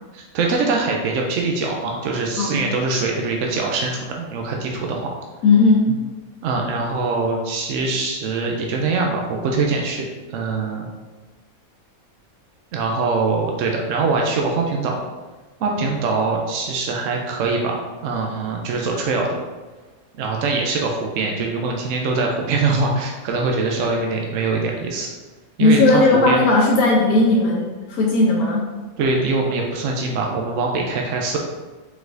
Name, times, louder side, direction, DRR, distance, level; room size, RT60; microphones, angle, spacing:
voice 1, 0.1-5.1 6.4-10.9 12.7-15.0 15.6-19.4 20.2-25.1 25.6-26.4 29.0-31.4, right 3 dB, 70° right, 0 dB, 0.9 m, -23 dB
voice 2, 5.4-6.0 25.6-28.7, left 2 dB, 85° left, -3 dB, 1.2 m, -16 dB
4.7 x 4.1 x 2.6 m, 1.3 s
omnidirectional pair, 1.5 m